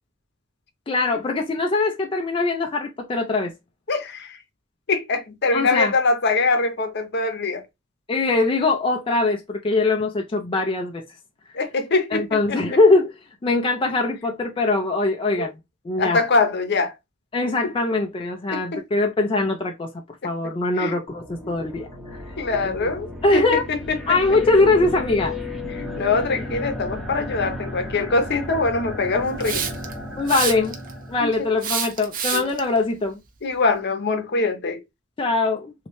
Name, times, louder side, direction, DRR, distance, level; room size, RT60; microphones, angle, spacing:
voice 1, 0.9-3.5 5.5-5.9 8.1-11.0 12.1-13.1 13.4-15.5 15.9-16.2 17.3-19.9 20.2-22.2 22.8-22.9 23.2-23.7 24.1-25.4 30.2-30.8 31.1-33.2 35.2-35.7, left 3 dB, 25° left, 0.4 m, -22 dB
voice 2, 3.9-4.4 4.9-7.6 11.5-12.8 15.4-15.5 16.0-16.9 17.6-17.7 18.5-18.8 20.2-20.3 20.8-21.0 21.4-21.6 22.4-24.2 25.7-29.7 31.2-31.3 32.3-32.5 33.4-34.8, left 3 dB, 55° left, 0.8 m, -23 dB
sound 1, 21.1-31.6, left 2 dB, ahead, 0.7 m, -34 dB
Hiss, 29.4-29.9 30.3-30.9 31.6-32.6, right 7 dB, 45° right, 0.6 m, -26 dB
3.1 x 2.7 x 3.0 m
head